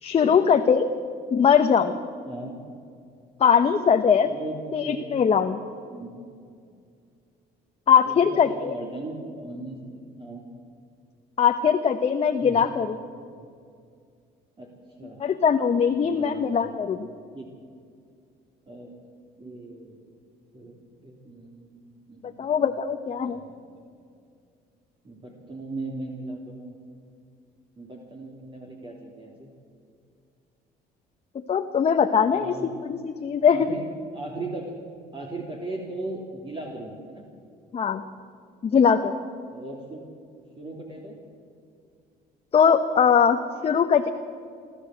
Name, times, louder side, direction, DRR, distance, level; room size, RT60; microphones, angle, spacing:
voice 1, 0.0-0.9 1.3-1.9 3.4-4.3 4.7-5.6 7.9-8.7 11.4-13.0 15.2-17.1 22.4-23.4 31.5-32.5 32.8-33.7 37.7-38.0 38.6-39.1 42.5-44.1, left 7 dB, 35° left, 6 dB, 1.0 m, -21 dB
voice 2, 2.3-2.6 4.2-5.1 5.9-6.2 8.0-10.4 12.4-12.8 14.6-14.7 15.0-15.2 16.0-16.6 17.3-17.5 18.7-19.0 19.4-20.1 20.5-22.5 23.2-23.6 25.0-26.7 27.8-29.5 32.2-32.7 33.5-33.8 34.1-34.7 35.1-37.2 39.5-40.0 40.6-41.2, right 2 dB, 30° right, 0 dB, 3.3 m, -38 dB
29.0 x 13.0 x 7.9 m, 2.3 s
cardioid pair, 110°, 17 cm